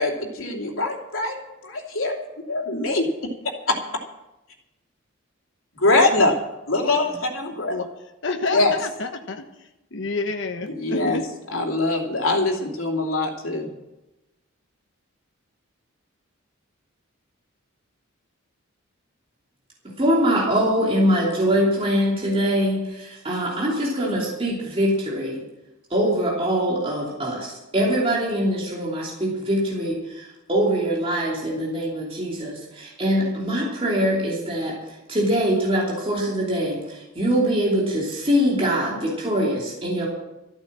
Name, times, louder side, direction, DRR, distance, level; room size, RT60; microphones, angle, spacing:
voice 1, 0.0-1.3 1.6-2.2 2.5-3.3 3.7-3.8 5.8-6.4 6.7-7.8 8.5-8.7 10.7-11.2 11.5-13.7, left 2 dB, 75° left, 0 dB, 2.8 m, -23 dB
voice 2, 8.2-9.4 9.9-11.2, left 3 dB, 60° left, 4 dB, 1.2 m, -28 dB
voice 3, 20.0-25.4 25.9-40.1, equal, 25° right, -3 dB, 3.0 m, -23 dB
14.0 x 9.5 x 7.5 m, 0.96 s
head